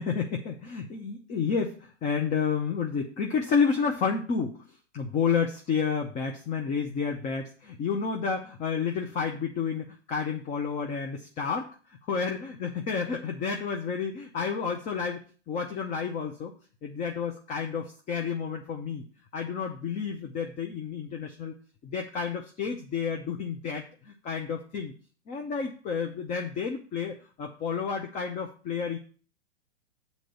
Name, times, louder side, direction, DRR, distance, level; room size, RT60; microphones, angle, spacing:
voice 1, 0.0-4.6 4.9-16.5 16.8-19.0 19.3-21.5 21.8-24.9 25.3-29.0, left 6 dB, 20° left, 3 dB, 0.8 m, -30 dB
7.7 x 4.2 x 6.9 m, 0.41 s
hypercardioid pair, 120°, 35 cm